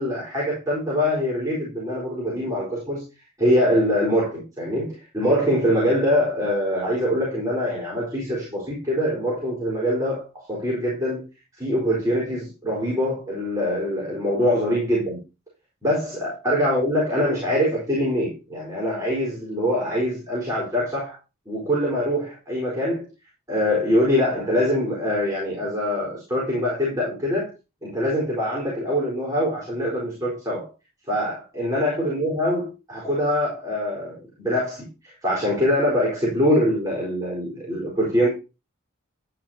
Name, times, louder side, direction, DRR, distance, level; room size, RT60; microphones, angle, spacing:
voice 1, 0.0-3.0 3.4-11.2 11.6-15.2 15.8-21.2 21.5-23.1 23.5-27.5 27.8-30.7 31.1-38.3, equal, 15° right, 4.3 m, -24 dB
11.5 x 9.5 x 2.8 m
head